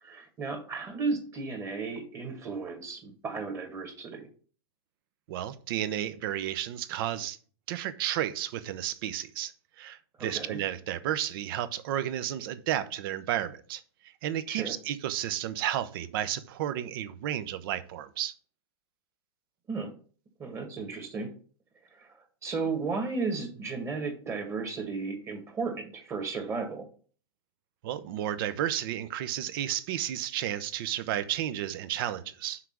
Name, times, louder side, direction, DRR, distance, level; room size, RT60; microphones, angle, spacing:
voice 1, 0.0-4.3 10.2-10.6 14.5-14.8 19.7-19.9 20.4-21.3 21.9-26.9, right 4 dB, 20° right, 1.7 m, -34 dB
voice 2, 5.3-7.4 7.7-9.5 9.8-13.8 14.2-18.3 27.8-32.6, right 11 dB, 55° right, 0.8 m, -32 dB
5.9 x 4.8 x 5.9 m
supercardioid pair, 150°, 14 cm